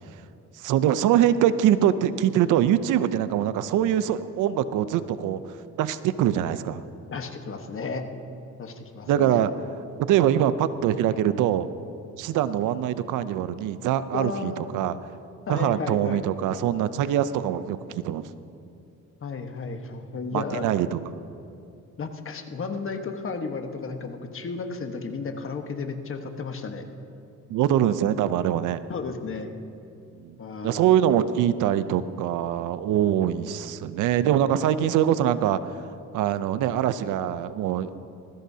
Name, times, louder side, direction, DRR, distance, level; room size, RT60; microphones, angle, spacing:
voice 1, 0.6-5.4 5.8-6.8 9.1-9.5 10.0-11.7 12.2-15.0 15.5-18.2 20.3-21.0 27.5-28.8 30.2-30.3 30.6-35.6 36.1-37.9, right 10 dB, 85° right, 14 dB, 0.6 m, -23 dB
voice 2, 7.1-8.0 8.6-9.5 14.1-14.6 15.5-16.2 19.2-20.8 22.0-26.8 28.9-29.5 30.4-31.0, left 4 dB, 45° left, 6 dB, 1.3 m, -33 dB
20.0 x 15.5 x 2.8 m, 2.6 s
cardioid pair, 90°, 30 cm